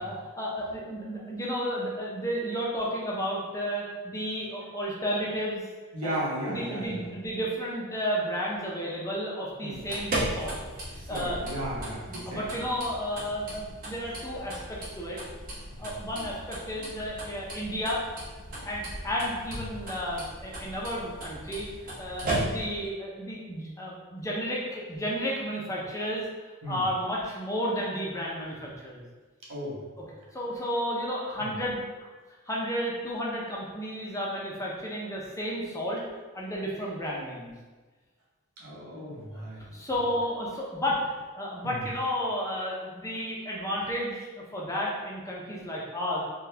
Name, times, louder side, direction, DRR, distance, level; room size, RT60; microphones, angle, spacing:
voice 1, 0.0-5.6 6.0-10.6 10.9-11.4 12.1-15.2 15.8-18.0 18.6-21.7 22.0-26.2 26.7-29.0 30.0-30.1 30.3-32.1 32.5-36.0 36.3-37.5 39.3-39.4 39.7-41.0 41.4-46.2, equal, 15° left, -4 dB, 0.5 m, -32 dB
voice 2, 5.9-7.0 9.6-9.8 11.1-12.4 15.7-15.9 18.5-18.7 22.2-22.4 26.6-26.8 29.5-29.8 31.4-31.5 38.6-39.6 41.6-41.8, right 1 dB, 90° right, -5 dB, 1.0 m, -35 dB
sound 1, 9.7-22.9, right 1 dB, 40° right, 0.8 m, -37 dB
3.8 x 2.3 x 2.7 m, 1.3 s
head